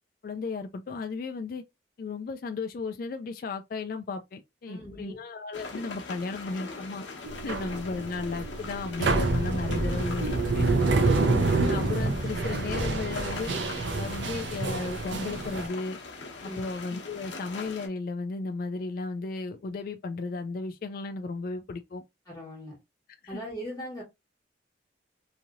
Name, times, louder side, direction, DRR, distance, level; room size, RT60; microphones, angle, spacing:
voice 1, 0.2-1.6 2.0-7.0 7.4-10.3 10.5-10.7 11.2-13.5 13.9-16.0 16.4-22.0 23.2-23.4, left 3 dB, 50° left, 0.3 m, -34 dB
voice 2, 4.7-5.2 7.4-7.6 16.4-16.7 22.3-22.8 23.3-24.0, equal, 20° left, 1.5 m, -40 dB
sound 1, 5.5-17.9, left 3 dB, 85° left, 0.9 m, -41 dB
sound 2, 7.2-15.7, right 3 dB, 75° right, 0.6 m, -27 dB
3.0 x 2.7 x 2.5 m
head